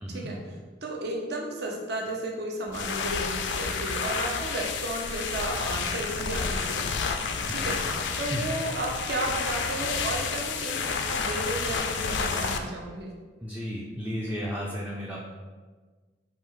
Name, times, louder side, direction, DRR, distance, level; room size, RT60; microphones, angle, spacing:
voice 1, 0.1-6.9 7.1-13.1, right 1 dB, 65° right, -1 dB, 0.8 m, -33 dB
sound 1, 2.7-12.6, left 5 dB, 75° left, 0.4 m, -30 dB
voice 2, 13.4-15.3, equal, 10° right, -3 dB, 0.4 m, -33 dB
4.8 x 2.6 x 3.7 m, 1.4 s
head